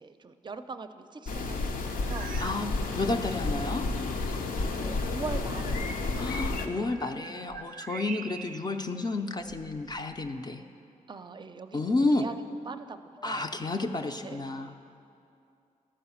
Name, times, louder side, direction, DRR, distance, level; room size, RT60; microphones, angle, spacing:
voice 1, 0.0-2.3 4.6-6.2 7.9-8.1 11.1-12.4 12.7-13.5 14.2-14.8, right 4 dB, 35° right, 10 dB, 0.5 m, -42 dB
sound 1, 1.3-6.7, left 3 dB, 90° left, 0.7 m, -31 dB
sound 2, 2.1-2.7 3.0-3.3 4.0-4.1 6.5-8.8 9.4-10.4, right 7 dB, 85° right, 0.4 m, -44 dB
voice 2, 2.4-3.8 6.1-10.6 11.7-12.3 13.2-14.8, left 2 dB, 30° left, 4 dB, 0.4 m, -31 dB
12.5 x 4.8 x 7.1 m, 2.5 s
cardioid pair, 85°, 14 cm